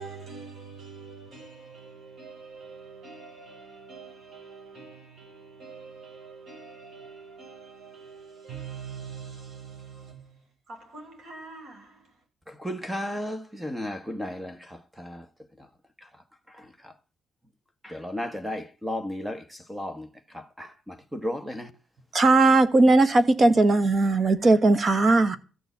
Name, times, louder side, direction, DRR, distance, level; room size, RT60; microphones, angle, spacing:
voice 1, 0.0-10.3 10.7-12.0, right 5 dB, 55° right, 6.4 m, -44 dB
voice 2, 12.6-14.5 17.9-19.4 19.7-20.1 20.6-20.7 21.1-21.7, left 1 dB, 5° right, 1.2 m, -33 dB
voice 3, 22.1-25.4, right 2 dB, 30° right, 1.4 m, -18 dB
14.0 x 7.0 x 8.3 m
cardioid pair, 135°, 0 cm